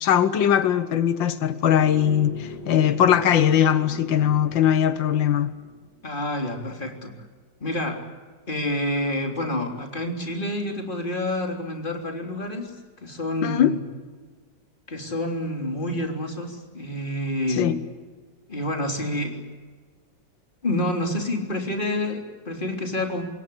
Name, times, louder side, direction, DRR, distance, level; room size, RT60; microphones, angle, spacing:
voice 1, 0.0-5.5 13.4-13.7 17.6-17.8, left 9 dB, 90° left, 1.8 m, -20 dB
sound 1, 1.7-6.3, right 1 dB, 65° right, 5.6 m, -41 dB
voice 2, 6.0-7.1 7.6-8.0 8.5-13.8 14.9-17.7 18.5-19.4 20.6-23.2, left 1 dB, 25° left, 3.5 m, -28 dB
26.5 x 22.0 x 8.4 m
omnidirectional pair, 2.0 m